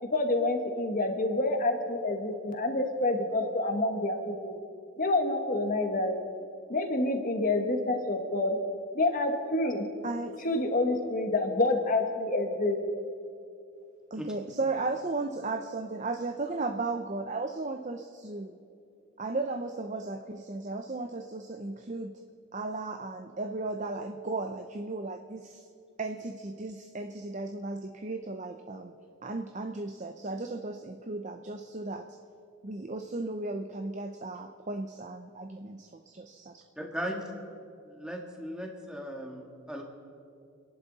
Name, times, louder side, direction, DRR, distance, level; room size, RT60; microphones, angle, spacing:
voice 1, 0.0-4.5 5.0-6.2 6.7-8.6 8.9-9.8 10.4-12.8, left 2 dB, 40° left, 4 dB, 1.6 m, -28 dB
voice 2, 10.0-10.4 14.1-18.5 19.2-22.1 22.5-25.6 26.0-28.9 29.2-32.2 32.6-36.4, right 3 dB, 35° right, 5 dB, 0.6 m, -35 dB
voice 3, 36.8-37.2 37.9-39.8, equal, 5° right, 0 dB, 1.7 m, -37 dB
28.5 x 11.0 x 4.1 m, 2.6 s
head